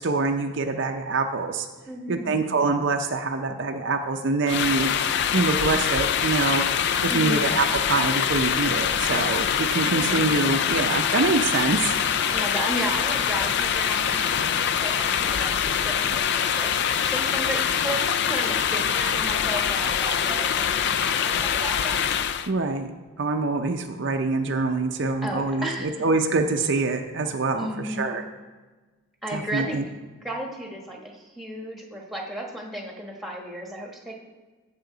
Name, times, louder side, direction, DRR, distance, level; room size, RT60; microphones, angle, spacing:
voice 1, 0.0-1.7 2.1-4.9 5.3-6.7 7.0-12.0 22.5-22.9 23.2-28.2 29.3-29.8, right 3 dB, 55° right, 4 dB, 0.5 m, -25 dB
voice 2, 1.9-2.5 7.1-7.5 9.8-10.3 12.3-22.0 25.2-26.0 27.6-28.1 29.2-29.8 30.2-34.1, right 1 dB, ahead, 0 dB, 1.2 m, -34 dB
sound 1, 4.5-22.5, left 8 dB, 50° left, 0.3 m, -24 dB
15.0 x 5.7 x 3.9 m, 1.3 s
head